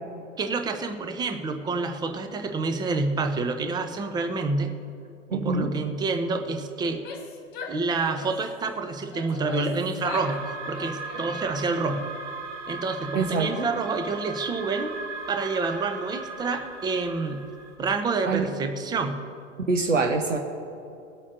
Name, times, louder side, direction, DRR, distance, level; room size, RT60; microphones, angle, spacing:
voice 1, 0.4-4.7 5.3-7.0 7.7-10.4 10.7-12.0 12.7-14.9 15.3-17.4 17.8-19.2, right 3 dB, 10° right, 7 dB, 0.7 m, -28 dB
voice 2, 5.3-5.7 13.1-13.7 18.3-18.5 19.7-20.4, right 4 dB, 80° right, 5 dB, 0.9 m, -24 dB
Female speech woman speaking / Yell, 6.9-8.5 9.1-10.4 10.7-11.7, left 4 dB, 25° left, 2.0 m, -41 dB
sound 1, 10.0-17.7, right 3 dB, 60° right, 1.9 m, -38 dB
22.0 x 8.4 x 2.7 m, 2.6 s
figure-of-eight pair, 95°, 37 cm